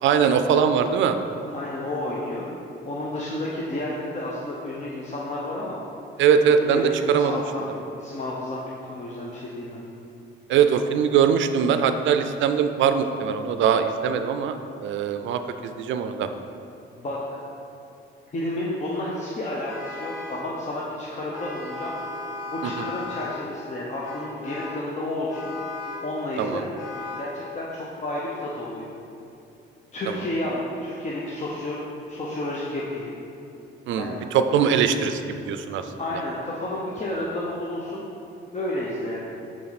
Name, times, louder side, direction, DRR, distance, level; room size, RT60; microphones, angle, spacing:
voice 1, 0.0-1.2 6.2-7.4 10.5-14.5 14.8-16.3 22.6-22.9 26.4-26.7 33.9-35.8, right 7 dB, 75° right, 9 dB, 0.4 m, -21 dB
voice 2, 1.5-2.5 2.8-5.8 6.6-9.8 17.0-17.4 18.3-21.9 22.5-25.5 26.0-26.7 27.2-28.9 29.9-31.8 32.1-33.1 34.0-34.2 36.0-38.0 38.5-39.2, left 1 dB, 35° left, -5 dB, 0.8 m, -31 dB
Vehicle horn car horn honking, 19.6-20.5 21.3-23.5 24.0-24.9 25.3-26.1 26.8-27.4, left 3 dB, 80° left, 0.8 m, -36 dB
6.2 x 4.3 x 4.0 m, 2.7 s
cardioid pair, 90°, 20 cm